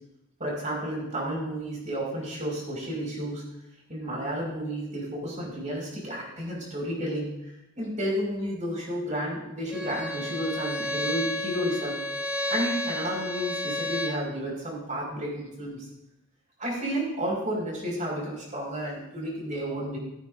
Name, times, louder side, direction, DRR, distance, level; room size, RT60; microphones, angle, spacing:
voice 1, 0.4-3.4 3.9-7.3 7.8-12.0 12.5-15.8 16.6-20.0, equal, 35° right, -2 dB, 5.6 m, -31 dB
Bowed string instrument, 9.7-14.2, left 1 dB, 5° right, 1.1 m, -31 dB
15.5 x 14.0 x 2.7 m, 0.91 s
head